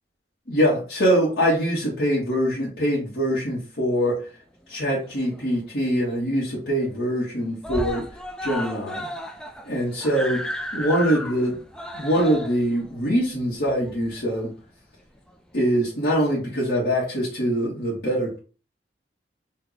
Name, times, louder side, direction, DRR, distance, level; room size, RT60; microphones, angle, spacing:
voice 1, 0.5-4.2 4.7-8.0 8.4-9.1 9.6-10.4 10.7-11.6 11.9-14.5 15.5-18.4, equal, 75° left, -8 dB, 1.7 m, -23 dB
Screaming, 4.7-5.7 6.0-6.1 6.4-6.5 6.8-7.3 7.6-14.4 15.3-15.4, equal, 5° left, 0.4 m, -34 dB
4.4 x 2.7 x 4.0 m, 0.36 s
head